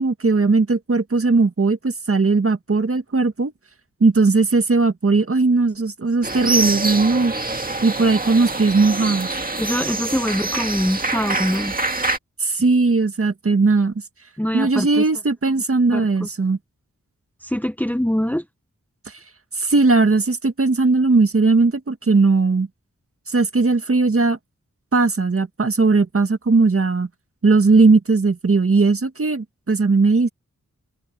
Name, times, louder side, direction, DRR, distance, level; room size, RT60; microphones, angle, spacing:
voice 1, 0.0-3.5 4.0-7.3 7.8-9.4 12.4-13.9 14.5-16.6 19.6-22.7 23.3-24.4 24.9-27.1 27.4-30.3, right 3 dB, 45° right, 1.8 m, -18 dB
sound 1, 6.2-12.2, right 2 dB, 30° right, 2.0 m, -25 dB
voice 2, 9.6-11.7 14.4-15.0 15.9-16.3 17.4-18.4, equal, 5° left, 1.1 m, -23 dB
wide cardioid pair, 95°, 30 cm